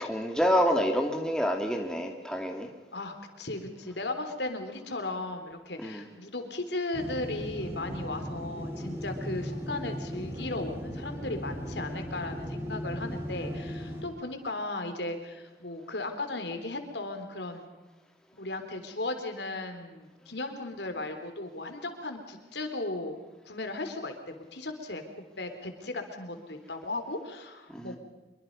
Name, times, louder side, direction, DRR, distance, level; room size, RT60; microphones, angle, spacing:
voice 1, 0.0-2.7 5.8-6.1 27.7-28.0, equal, 5° left, 2 dB, 2.4 m, -27 dB
voice 2, 2.9-17.7 18.4-23.1 23.4-25.0 25.4-28.0, left 2 dB, 80° left, 6 dB, 3.6 m, -36 dB
sound 1, 6.9-14.0, equal, 15° right, 4.0 m, -37 dB
25.5 x 23.0 x 5.4 m, 1.2 s
head